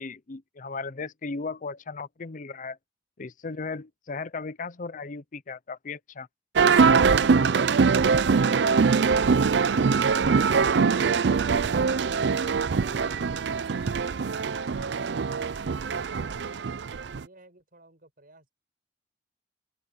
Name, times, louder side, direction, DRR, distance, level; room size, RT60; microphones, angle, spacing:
voice 1, 0.0-2.8 3.2-6.3, left 4 dB, 45° left, 0.6 m, -36 dB
sound 1, 6.6-17.2, right 5 dB, 70° right, 0.5 m, -23 dB
voice 2, 15.7-18.5, right 2 dB, 55° right, 7.8 m, -56 dB
head